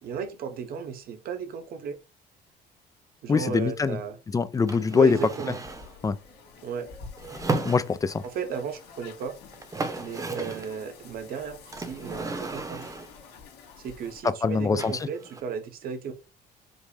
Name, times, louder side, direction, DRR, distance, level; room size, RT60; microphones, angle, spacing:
voice 1, 0.0-2.0 3.2-4.2 4.9-5.6 6.6-6.9 8.3-9.4 10.0-12.8 13.8-16.1, right 6 dB, 60° right, 0.9 m, -34 dB
voice 2, 3.3-4.0 4.3-5.2 6.0-6.2 7.6-8.2 14.2-15.1, left 5 dB, 20° left, 0.3 m, -23 dB
sound 1, 4.7-5.9 7.2-8.3 9.2-9.3 9.5-10.8 11.7-13.2 14.8-15.4, right 3 dB, 20° right, 0.8 m, -34 dB
sound 2, 5.6-14.2, left 5 dB, 85° left, 1.6 m, -49 dB
5.3 x 2.0 x 4.8 m
cardioid pair, 110°, 17 cm